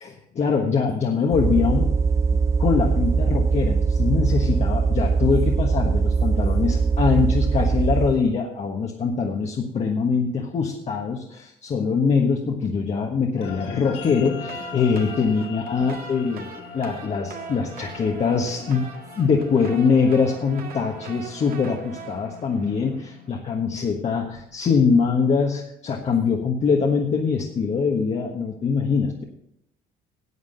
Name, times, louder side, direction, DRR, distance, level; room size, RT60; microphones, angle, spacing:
voice 1, 0.3-2.0 2.6-18.9 19.2-29.2, left 5 dB, 40° left, 1 dB, 1.4 m, -23 dB
sound 1, 1.3-8.2, right 5 dB, 15° right, 0.4 m, -21 dB
sound 2, 13.3-24.0, left 5 dB, 75° left, 1.6 m, -40 dB
sound 3, 14.2-23.3, right 6 dB, 60° right, 2.0 m, -42 dB
9.6 x 8.2 x 6.7 m, 0.75 s
cardioid pair, 110°, 17 cm